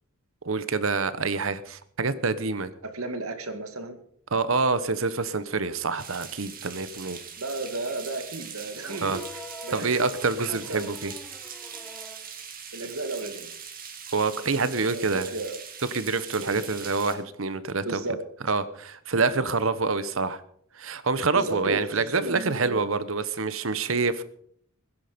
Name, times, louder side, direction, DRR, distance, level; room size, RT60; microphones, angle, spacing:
voice 1, 0.4-2.7 4.3-7.2 9.0-9.2 9.7-11.1 14.1-15.3 15.9-18.0 18.5-20.4 20.8-24.2, right 4 dB, 65° right, 14 dB, 1.0 m, -26 dB
voice 2, 2.8-4.0 7.4-10.1 10.4-11.0 12.7-13.5 14.5-15.6 16.4-16.7 17.8-18.2 21.3-22.8, right 2 dB, 85° right, 7 dB, 2.1 m, -34 dB
sound 1, 6.0-17.2, right 7 dB, 40° right, 2.3 m, -41 dB
sound 2, 8.8-12.3 13.7-13.8, left 1 dB, 5° left, 1.2 m, -45 dB
21.0 x 10.5 x 5.2 m, 0.65 s
head